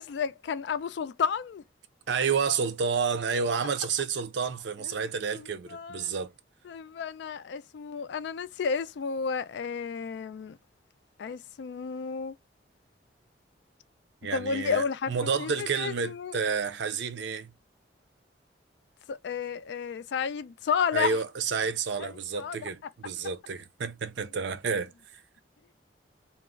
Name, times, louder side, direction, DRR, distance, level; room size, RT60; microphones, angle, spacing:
voice 1, 0.0-1.6 4.8-6.1 6.7-10.6 11.2-12.4 14.3-16.4 19.1-21.2 21.9-22.7, left 6 dB, 65° left, 0.3 m, -32 dB
voice 2, 2.1-6.3 14.2-17.5 20.9-24.9, right 5 dB, 70° right, 0.5 m, -30 dB
2.3 x 2.0 x 3.5 m
head